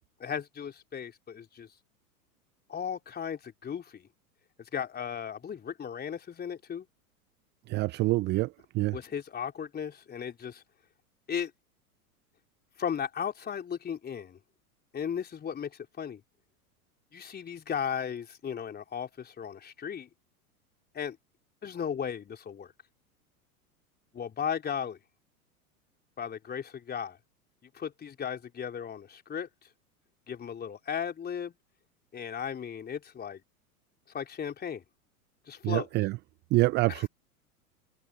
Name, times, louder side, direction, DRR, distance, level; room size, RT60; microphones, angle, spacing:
voice 1, 0.2-1.7 2.7-4.1 4.7-6.9 8.9-10.6 11.3-11.5 12.8-14.4 14.9-16.2 17.1-20.1 20.9-21.2 21.6-22.7 24.1-25.0 26.2-27.2 27.7-29.5 30.3-31.5 32.1-33.4 34.1-34.8 35.5-35.9 36.9-37.1, left 7 dB, 20° left, 3.8 m, -36 dB
voice 2, 7.7-8.5 8.7-9.0 35.6-36.1 36.5-37.1, right 20 dB, 25° right, 0.5 m, -26 dB
figure-of-eight pair, 95°, 46 cm